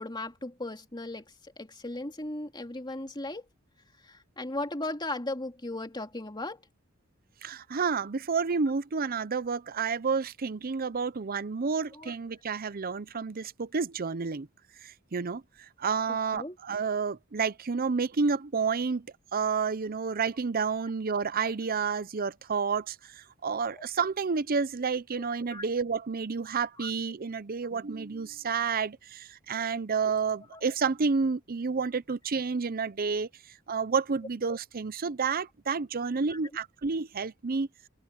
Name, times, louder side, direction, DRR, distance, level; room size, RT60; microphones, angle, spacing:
voice 1, 0.0-3.4 4.0-6.6 11.9-12.1 16.3-16.6 23.7-23.9 25.1-25.6 26.8-26.9 30.5-30.6 36.3-36.4, left 2 dB, 20° left, 2.8 m, -37 dB
voice 2, 7.4-14.5 14.8-33.3 33.7-37.7, right 5 dB, 45° right, 0.7 m, -30 dB
head